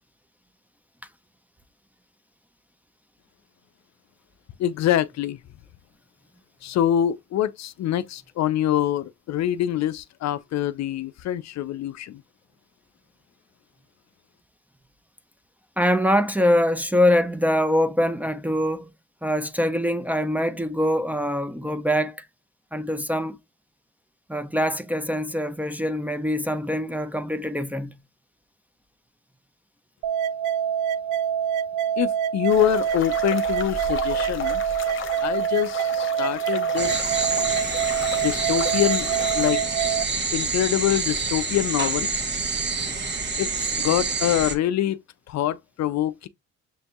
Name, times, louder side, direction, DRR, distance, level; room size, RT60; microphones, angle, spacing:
voice 1, 4.6-5.4 6.6-12.2 32.0-34.6 35.2-37.0 38.2-40.0 40.3-42.1 43.4-45.0 45.3-46.3, left 12 dB, 65° left, 0.5 m, -25 dB
voice 2, 15.8-18.9 19.2-22.3 22.7-23.4 24.3-28.0 37.7-37.8, equal, 5° right, 0.5 m, -24 dB
sound 1, 30.0-40.0, right 8 dB, 90° right, 0.5 m, -25 dB
sound 2, 32.5-39.5, left 6 dB, 45° left, 0.9 m, -35 dB
sound 3, 36.8-44.6, right 4 dB, 35° right, 1.1 m, -27 dB
6.7 x 2.6 x 2.3 m
cardioid pair, 90°, 30 cm